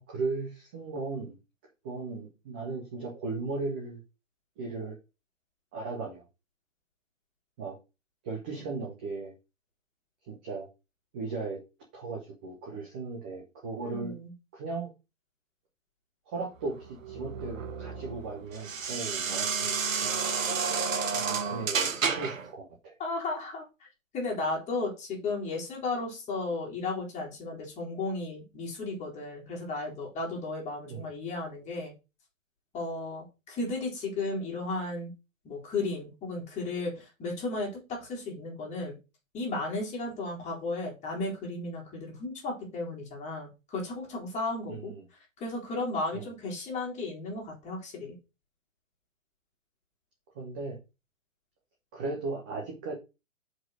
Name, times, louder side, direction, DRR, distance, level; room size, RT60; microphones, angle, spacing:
voice 1, 0.0-1.3 1.8-4.0 4.6-5.0 5.7-6.2 7.6-7.7 8.2-9.3 10.3-10.7 11.1-11.6 11.9-14.1 14.5-14.9 16.3-20.2 21.1-22.9 30.9-31.1 44.7-45.0 46.1-46.3 50.4-50.8 51.9-52.9, right 3 dB, 10° right, 0 dB, 0.4 m, -36 dB
voice 2, 13.8-14.3 23.0-23.6 24.1-31.9 32.7-35.1 35.4-39.0 39.3-44.9 45.4-48.1, left 2 dB, 15° left, -1 dB, 3.3 m, -34 dB
sound 1, 16.6-22.5, right 5 dB, 75° right, 1.4 m, -31 dB
5.3 x 5.1 x 6.1 m, 0.27 s
hypercardioid pair, 140°, 39 cm